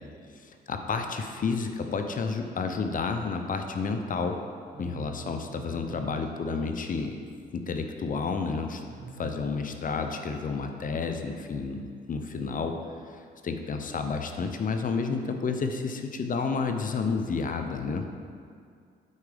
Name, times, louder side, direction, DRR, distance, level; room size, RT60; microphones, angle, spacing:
voice 1, 0.3-4.4 4.8-7.2 7.5-8.8 9.2-12.8 13.1-18.1, left 4 dB, 45° left, 5 dB, 0.7 m, -31 dB
voice 2, 4.7-6.2 8.9-9.4, right 6 dB, 60° right, -1 dB, 1.6 m, -44 dB
8.3 x 4.9 x 5.0 m, 2.3 s
cardioid pair, 90°, 20 cm